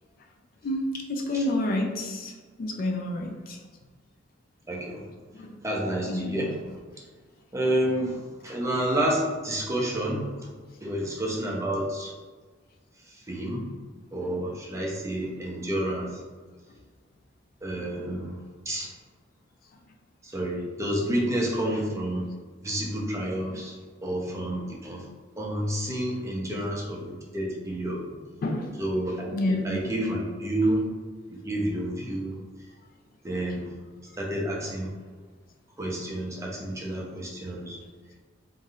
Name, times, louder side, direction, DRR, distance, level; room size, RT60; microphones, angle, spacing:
voice 1, 0.6-3.6 5.3-5.5 6.0-6.4 13.5-13.7 21.1-21.3 28.4-28.8 29.3-29.7, left 1 dB, 50° left, 2 dB, 0.3 m, -29 dB
voice 2, 4.7-5.0 5.6-6.8 7.5-10.3 10.8-12.1 13.1-13.6 14.1-16.1 17.6-18.4 18.7-18.9 20.2-22.2 22.6-23.8 24.0-25.0 25.4-28.0 28.8-29.3 29.6-30.8 31.3-32.4 33.2-33.7 34.2-34.9 35.8-37.8, right 1 dB, 15° right, -3 dB, 0.6 m, -29 dB
3.3 x 2.6 x 2.3 m, 1.4 s
head